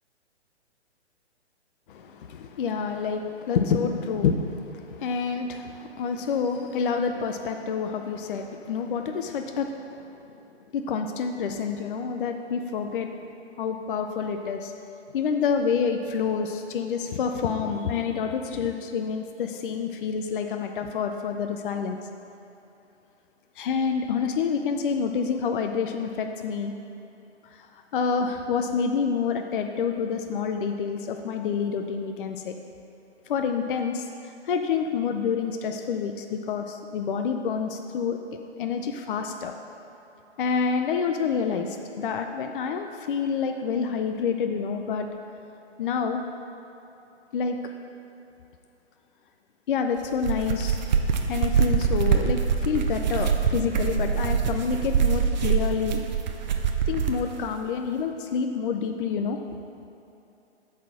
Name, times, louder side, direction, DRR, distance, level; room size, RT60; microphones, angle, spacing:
voice 1, 1.9-10.2 10.7-13.1 13.6-14.7 15.1-22.0 23.6-26.7 27.6-27.7 27.9-32.5 33.3-38.2 38.6-39.6 40.4-45.1 45.8-46.2 47.3-47.6 49.7-50.8 51.3-56.0 56.9-59.4, left 6 dB, 50° left, 5 dB, 0.5 m, -28 dB
sound 1, 50.0-57.2, right 7 dB, 40° right, 0.6 m, -24 dB
7.9 x 4.2 x 6.2 m, 2.8 s
hypercardioid pair, 135°, 35 cm